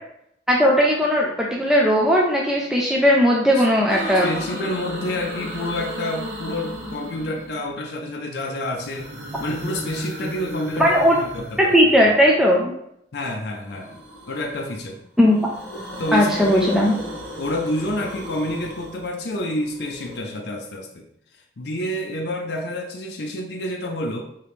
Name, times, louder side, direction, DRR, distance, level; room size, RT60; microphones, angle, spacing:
voice 1, 0.5-4.3 10.8-11.2 11.6-12.7 15.2-15.4 16.1-16.9, equal, 5° right, -3 dB, 0.5 m, -17 dB
sound 1, 3.9-7.8 8.6-12.3 13.7-14.8 15.2-20.2, equal, 70° right, 1.2 m, -35 dB
voice 2, 4.1-9.1 9.4-11.8 13.1-15.0 15.7-16.7 17.4-21.1 21.6-24.2, left 1 dB, 65° left, 1 dB, 0.5 m, -29 dB
4.8 x 2.9 x 3.2 m, 0.74 s
head